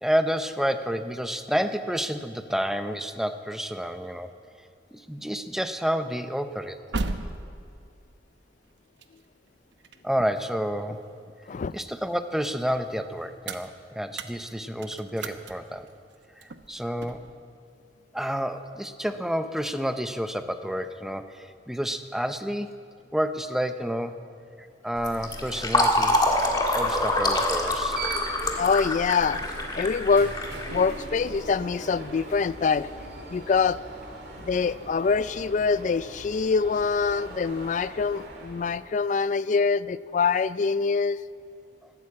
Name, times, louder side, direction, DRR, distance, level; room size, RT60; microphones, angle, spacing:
voice 1, 0.0-4.3 4.9-6.8 10.0-11.0 11.7-15.9 16.4-17.3 18.1-22.9 23.1-24.2 24.6-26.2 26.7-28.0 41.8-41.9, equal, 5° right, 9 dB, 0.6 m, -29 dB
sound 1, 6.4-11.5 11.9-17.4, right 3 dB, 85° right, 0.9 m, -38 dB
Fill (with liquid), 25.0-31.4, left 1 dB, 25° left, 1.6 m, -26 dB
Alarm, 25.0-39.0, right 2 dB, 65° right, 2.6 m, -41 dB
voice 2, 28.6-29.4 29.7-30.3 30.7-32.9 33.3-33.8 34.4-41.2, left 5 dB, 45° left, 16 dB, 0.4 m, -24 dB
13.5 x 12.5 x 8.5 m, 2.3 s
head